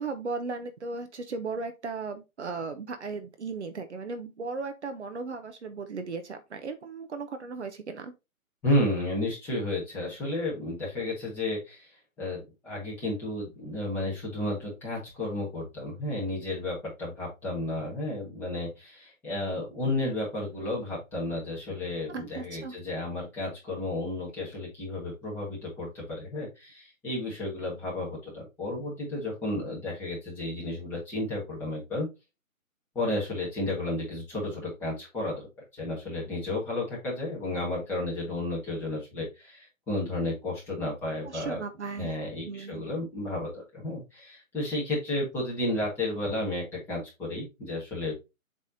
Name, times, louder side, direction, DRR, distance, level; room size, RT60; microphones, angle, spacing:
voice 1, 0.0-8.1 22.1-22.7 41.3-42.1 42.4-42.9, right 4 dB, 55° right, 1.0 m, -36 dB
voice 2, 8.6-11.9 12.2-32.1 32.9-41.6 42.0-48.1, left 1 dB, 5° left, 1.6 m, -32 dB
7.6 x 3.5 x 4.0 m
hypercardioid pair, 165°, 42 cm